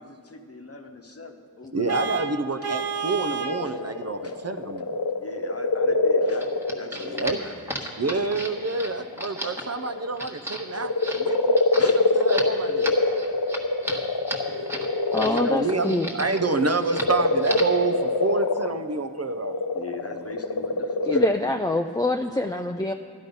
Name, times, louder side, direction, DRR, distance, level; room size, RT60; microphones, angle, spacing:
voice 1, 0.0-2.0 3.6-3.8 4.2-4.4 5.2-8.5 10.3-10.4 10.7-10.9 11.8-12.1 14.4-14.7 15.3-15.7 19.7-21.6, left 3 dB, 40° left, 4 dB, 1.0 m, -41 dB
voice 2, 1.7-5.0 7.0-7.4 8.0-12.9 15.2-19.6, right 3 dB, 45° right, 8 dB, 0.6 m, -28 dB
Vehicle horn car horn honking, 1.9-3.6, right 5 dB, 85° right, 0.8 m, -30 dB
sound 1, 2.9-7.9 8.4-10.1 10.6-21.3, left 3 dB, 70° left, 0.7 m, -25 dB
sound 2, 6.3-15.4 15.7-16.5 16.8-17.1 17.4-17.8, equal, 5° right, 1.3 m, -35 dB
voice 3, 15.1-16.1 21.1-22.9, left 2 dB, 10° left, 4 dB, 0.4 m, -25 dB
12.0 x 11.5 x 5.3 m, 2.5 s
wide cardioid pair, 55°, 37 cm